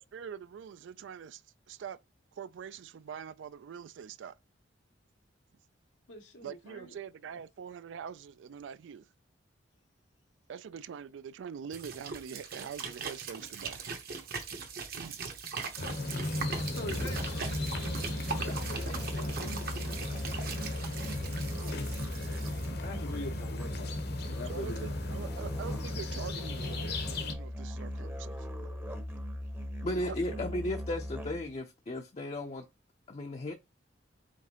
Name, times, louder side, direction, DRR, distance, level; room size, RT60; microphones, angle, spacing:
voice 1, 0.1-1.4 1.7-2.0 2.3-4.4 6.4-9.1 10.5-13.8 14.9-15.2 24.4-28.7 29.9-30.4, right 7 dB, 80° right, 0.3 m, -44 dB
voice 2, 6.1-7.0 16.7-19.8 20.8-21.0 21.6-21.9 22.8-24.9 30.0-30.2, left 2 dB, 85° left, 0.9 m, -45 dB
sound 1, 11.7-22.7, right 5 dB, 55° right, 0.9 m, -40 dB
sound 2, 15.8-27.3, left 2 dB, 60° left, 0.9 m, -37 dB
Musical instrument, 16.8-31.6, left 1 dB, 10° right, 0.7 m, -39 dB
voice 3, 29.8-32.6 33.1-33.5, left 1 dB, 35° left, 0.5 m, -35 dB
5.1 x 3.6 x 2.9 m
head